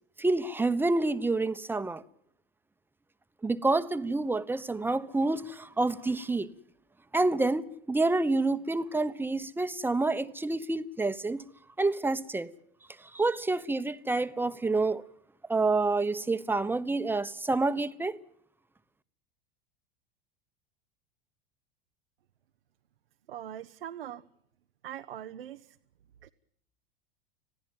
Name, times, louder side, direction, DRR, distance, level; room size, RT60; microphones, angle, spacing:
voice 1, 0.2-2.0 3.4-6.5 7.1-11.5 11.8-12.5 13.0-15.0 15.5-18.2, right 3 dB, 5° right, 1.1 m, -28 dB
voice 2, 23.3-24.2 24.8-25.7 26.2-26.3, right 11 dB, 80° right, 0.9 m, -41 dB
26.0 x 16.5 x 9.1 m
hypercardioid pair, 85°, 29 cm